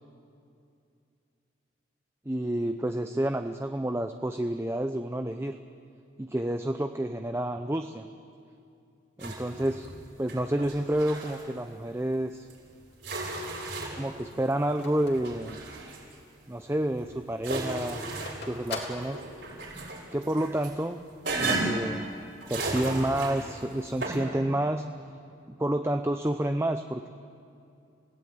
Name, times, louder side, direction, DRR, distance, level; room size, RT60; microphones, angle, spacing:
voice 1, 2.3-5.6 6.2-8.1 9.2-9.9 10.2-12.5 14.0-15.6 16.5-18.0 18.4-19.2 20.1-21.0 21.4-22.1 22.5-24.9 25.5-27.2, right 1 dB, 15° right, 7 dB, 0.6 m, -29 dB
sound 1, 9.2-10.0 10.3-11.5 12.5-12.6 13.0-14.2 14.8-16.1 16.8-18.8 19.1-20.7 21.2-21.9 22.4-23.6 24.0-24.2, right 2 dB, 65° right, 7.7 m, -34 dB
Telephone, 12.8-16.2 16.6-16.7 16.9-19.8, left 3 dB, 60° left, 3.4 m, -42 dB
28.5 x 17.0 x 9.2 m, 2.5 s
head